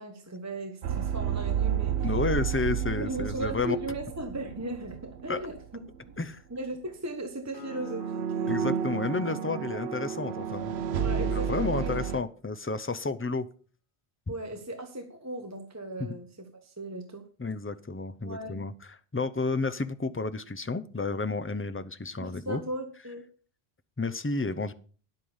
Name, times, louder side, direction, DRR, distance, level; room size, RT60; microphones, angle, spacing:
voice 1, 0.0-2.2 3.0-6.2 6.5-8.7 9.7-9.8 11.0-12.0 14.3-17.3 18.2-18.5 22.2-23.2, right 1 dB, 15° right, 5 dB, 1.1 m, -37 dB
sound 1, 0.8-5.7 5.9-6.2 7.6-12.2, right 8 dB, 80° right, 1.0 m, -31 dB
voice 2, 2.0-3.8 5.3-5.4 6.2-6.4 8.5-10.7 11.1-13.5 16.0-16.2 17.4-22.6 24.0-24.7, left 3 dB, 20° left, 11 dB, 0.4 m, -31 dB
Piano, 7.5-11.1, left 2 dB, 60° left, 2.6 m, -53 dB
10.5 x 8.1 x 5.5 m, 0.41 s
omnidirectional pair, 1.1 m